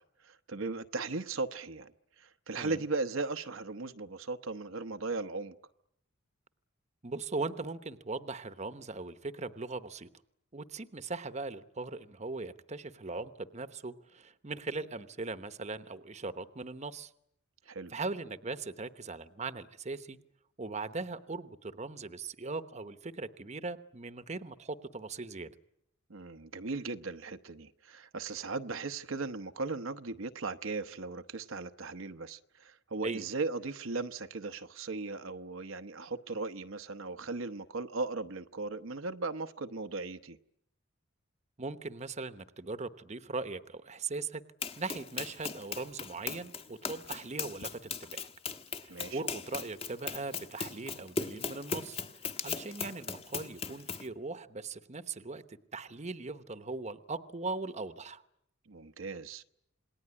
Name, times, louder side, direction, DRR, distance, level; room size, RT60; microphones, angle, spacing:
voice 1, 0.0-1.9 2.2-5.5 17.7-17.9 26.1-40.4 48.9-49.2 58.7-59.4, right 3 dB, 80° right, 1.0 m, -37 dB
voice 2, 7.0-10.1 10.5-17.1 17.9-20.2 20.6-25.5 33.0-33.2 41.6-44.4 44.8-48.3 48.8-52.0 52.4-58.2, right 3 dB, 35° right, 1.0 m, -39 dB
Run, 44.6-54.1, left 5 dB, 30° left, 1.3 m, -38 dB
27.5 x 20.5 x 9.8 m
head